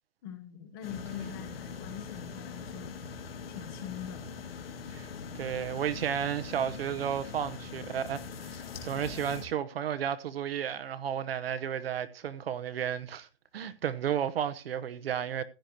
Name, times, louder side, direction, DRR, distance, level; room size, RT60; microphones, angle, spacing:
voice 1, 0.2-3.0 3.5-4.3, left 9 dB, 20° left, 0.8 m, -43 dB
sound 1, 0.8-9.5, left 5 dB, 70° left, 2.0 m, -42 dB
voice 2, 5.3-13.3 13.5-15.4, right 9 dB, 75° right, 1.0 m, -33 dB
16.0 x 10.0 x 2.9 m
hypercardioid pair, 175°, 30 cm